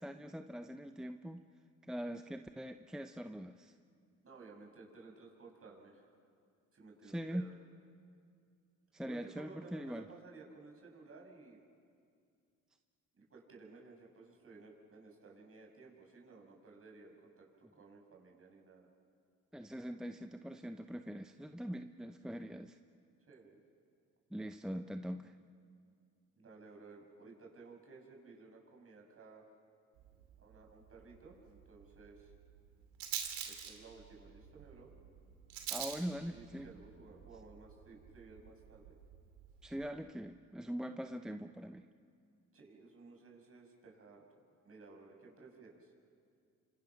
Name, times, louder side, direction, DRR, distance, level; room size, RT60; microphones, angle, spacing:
voice 1, 0.0-1.4 1.9-3.7 7.0-7.5 8.9-10.1 19.5-22.8 24.3-25.3 35.7-36.7 39.6-41.9, equal, ahead, 7 dB, 0.7 m, -42 dB
voice 2, 4.2-6.1 6.7-7.5 9.0-11.6 13.1-18.9 23.3-23.6 26.4-29.5 30.4-32.3 33.4-34.9 36.3-38.8 42.5-44.2 44.6-45.9, right 3 dB, 40° right, 0 dB, 6.2 m, -56 dB
Rattle, 30.0-39.9, right 9 dB, 90° right, 2.7 m, -48 dB
28.5 x 25.5 x 5.9 m, 2.3 s
supercardioid pair, 80°, 34 cm